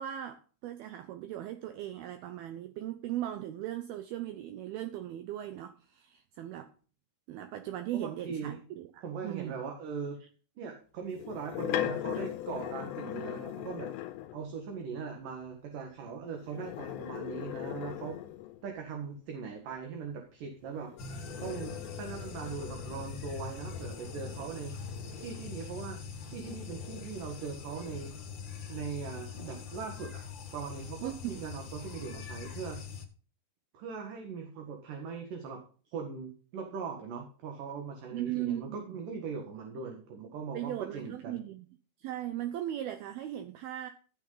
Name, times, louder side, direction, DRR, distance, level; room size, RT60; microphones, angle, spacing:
voice 1, 0.0-6.7 7.3-9.6 31.0-31.5 38.1-39.0 40.5-41.7 42.0-43.9, right 12 dB, 75° right, 2.4 m, -38 dB
voice 2, 7.9-8.6 9.0-10.2 10.6-13.9 14.3-18.2 18.6-20.9 21.4-24.8 25.2-26.0 26.3-28.1 28.7-30.2 30.5-32.8 33.7-35.6 35.9-41.4, right 5 dB, 60° right, 2.8 m, -40 dB
sound 1, 11.1-14.4 16.4-18.7 20.7-25.9 26.4-28.2, left 12 dB, 85° left, 3.0 m, -40 dB
sound 2, 21.0-33.1, left 5 dB, 55° left, 1.3 m, -43 dB
15.0 x 7.0 x 3.9 m
omnidirectional pair, 5.0 m